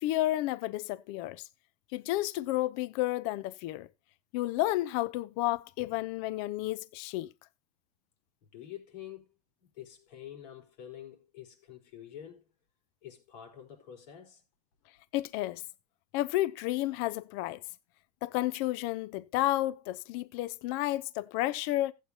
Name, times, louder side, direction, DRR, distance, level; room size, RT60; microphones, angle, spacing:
voice 1, 0.0-1.5 1.9-3.9 4.3-7.3 15.1-15.6 16.1-17.6 18.2-21.9, left 16 dB, 60° left, 0.7 m, -31 dB
voice 2, 8.5-9.3 9.6-12.4 13.0-14.4, left 10 dB, 75° left, 4.4 m, -47 dB
15.0 x 8.4 x 2.8 m
supercardioid pair, 110°, 21 cm